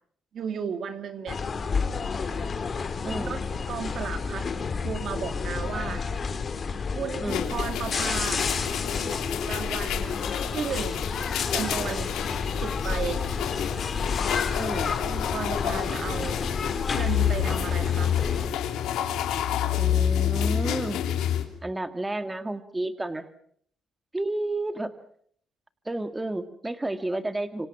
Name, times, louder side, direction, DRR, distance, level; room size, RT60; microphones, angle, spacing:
voice 1, 0.3-1.5 3.1-4.5 4.8-6.1 6.9-8.4 8.9-10.2 10.5-11.1 11.5-12.2 12.6-13.2 15.0-16.4 16.9-18.1, right 7 dB, 60° right, 9 dB, 2.4 m, -34 dB
sound 1, 1.3-18.5, left 5 dB, 40° left, 2.9 m, -30 dB
voice 2, 3.0-3.4 7.2-7.5 14.6-14.9 19.8-21.0 21.6-23.3 24.1-24.9 25.9-27.7, right 2 dB, 15° right, 9 dB, 1.8 m, -31 dB
sound 2, 7.3-21.4, left 10 dB, 90° left, 3.0 m, -29 dB
27.0 x 26.0 x 5.9 m, 0.62 s
cardioid pair, 90°, 0 cm